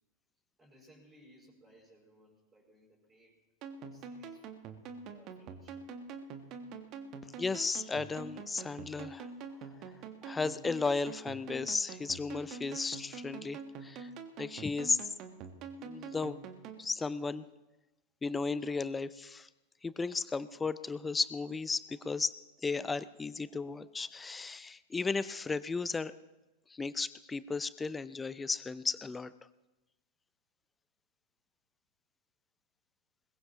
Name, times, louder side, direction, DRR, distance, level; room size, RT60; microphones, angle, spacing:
voice 1, 0.6-3.4 3.8-4.5 5.1-5.9, equal, 15° right, -2 dB, 5.4 m, -62 dB
sound 1, 3.6-16.8, right 5 dB, 35° right, 1.4 m, -46 dB
voice 2, 7.4-9.3 9.8-9.9 10.2-14.1 14.4-15.1 15.8-16.4 16.8-17.5 18.2-19.5 19.8-22.3 22.6-26.1 26.7-29.3, left 4 dB, 15° left, 16 dB, 0.5 m, -35 dB
21.5 x 20.5 x 3.0 m, 1.0 s
figure-of-eight pair, 90°, 0 cm